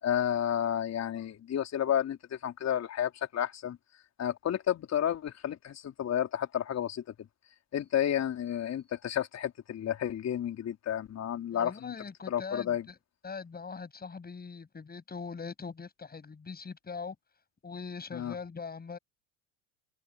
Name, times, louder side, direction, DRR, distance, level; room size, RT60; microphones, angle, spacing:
voice 1, 0.0-3.8 4.2-7.0 7.7-11.9 12.3-12.9 18.1-18.3, left 10 dB, 35° left, 4.0 m, -31 dB
voice 2, 11.5-13.0 13.2-17.2 17.6-19.0, left 5 dB, 20° left, 7.1 m, -41 dB
hypercardioid pair, 85°, 43 cm